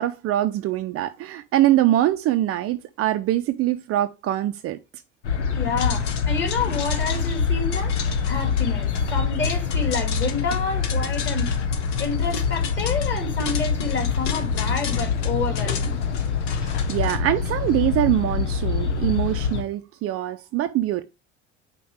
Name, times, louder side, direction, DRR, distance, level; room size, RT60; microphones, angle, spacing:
voice 1, 0.0-4.8 16.6-21.0, right 13 dB, 40° right, 0.7 m, -23 dB
sound 1, 5.2-19.6, left 5 dB, 75° left, 1.1 m, -25 dB
voice 2, 5.5-8.0 8.2-11.6 12.0-16.0, left 4 dB, 30° left, 3.0 m, -29 dB
sound 2, 5.8-17.2, left 7 dB, 55° left, 1.4 m, -36 dB
5.2 x 4.6 x 4.6 m
figure-of-eight pair, 65°, 35 cm